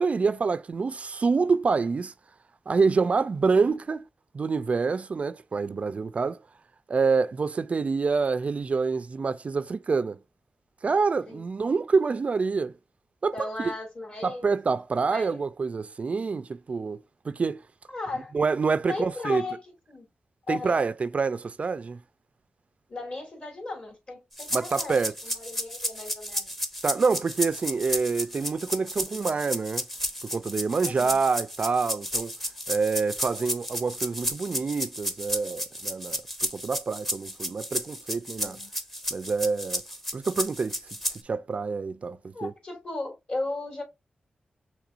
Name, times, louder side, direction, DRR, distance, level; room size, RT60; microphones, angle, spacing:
voice 1, 0.0-2.1 2.7-4.1 4.3-6.4 6.9-10.2 10.8-12.7 13.2-13.7 14.2-17.6 18.3-19.4 20.5-22.0 24.5-25.1 26.8-29.9 30.2-32.3 32.7-38.6 39.1-39.8 40.1-40.7 41.2-42.5, right 4 dB, 50° right, 0.3 m, -27 dB
voice 2, 13.3-14.4 15.1-15.4 17.9-18.3 18.9-19.6 19.9-20.1 20.5-20.8 22.9-26.5 30.8-31.2 38.4-38.7 42.3-43.8, left 2 dB, 45° left, 2.5 m, -36 dB
sound 1, 24.4-41.2, equal, 5° left, 0.7 m, -32 dB
6.0 x 3.3 x 2.5 m
wide cardioid pair, 95°, 3 cm